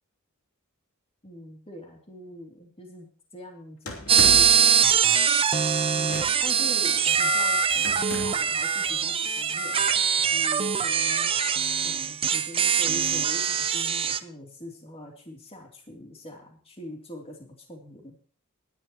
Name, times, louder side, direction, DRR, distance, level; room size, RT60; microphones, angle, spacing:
voice 1, 1.2-3.1 3.3-5.3 5.9-10.0 10.3-11.3 11.8-18.2, left 1 dB, 25° left, 1 dB, 2.8 m, -43 dB
sound 1, 3.9-4.7 6.0-6.6 7.8-8.5, left 1 dB, 70° left, 3.0 m, -35 dB
sound 2, 4.1-14.2, right 7 dB, 25° right, 0.6 m, -23 dB
20.0 x 10.5 x 3.0 m, 0.41 s
head